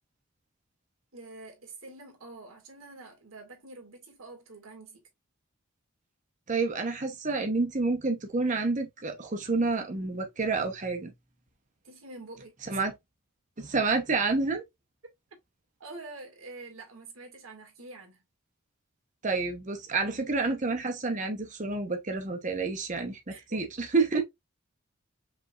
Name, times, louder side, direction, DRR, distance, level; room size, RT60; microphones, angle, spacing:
voice 1, 1.1-5.0 11.8-12.8 15.8-18.2 23.3-23.6, right 3 dB, 85° right, 2.0 m, -46 dB
voice 2, 6.5-11.1 12.7-12.9 13.6-14.6 19.2-23.2 23.5-24.2, right 3 dB, 40° right, 0.9 m, -29 dB
5.5 x 3.5 x 2.4 m
head